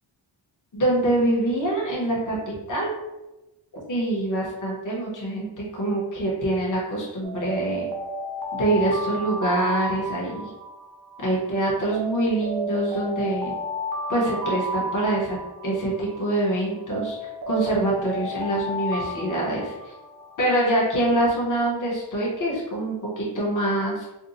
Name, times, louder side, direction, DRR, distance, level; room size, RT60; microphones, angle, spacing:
voice 1, 0.7-2.9 3.9-7.9 8.5-10.5 11.2-13.5 14.1-15.4 15.6-17.2 17.5-19.7 20.4-24.1, right 1 dB, 40° left, -4 dB, 1.0 m, -25 dB
Alarm, 7.2-11.4 11.9-16.4 16.9-20.7, right 1 dB, 50° right, 0.6 m, -32 dB
2.6 x 2.2 x 4.0 m, 1.0 s
wide cardioid pair, 150°, 46 cm